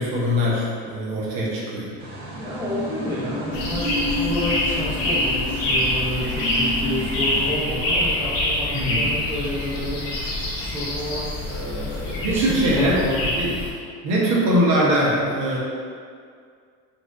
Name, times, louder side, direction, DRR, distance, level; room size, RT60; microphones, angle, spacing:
voice 1, 0.0-1.9 8.7-9.0 12.2-13.5 14.0-15.6, equal, 80° right, -5 dB, 0.9 m, -22 dB
sound 1, 1.5-10.4 10.8-11.0, left 1 dB, 25° right, 1.1 m, -32 dB
sound 2, 2.0-7.5, right 1 dB, 60° right, 0.8 m, -38 dB
voice 2, 2.4-10.1 10.6-13.2, left 1 dB, 5° right, -9 dB, 0.5 m, -30 dB
sound 3, 3.5-13.7, left 1 dB, 75° left, 0.8 m, -25 dB
4.1 x 2.5 x 2.4 m, 2.2 s
cardioid pair, 170°, 32 cm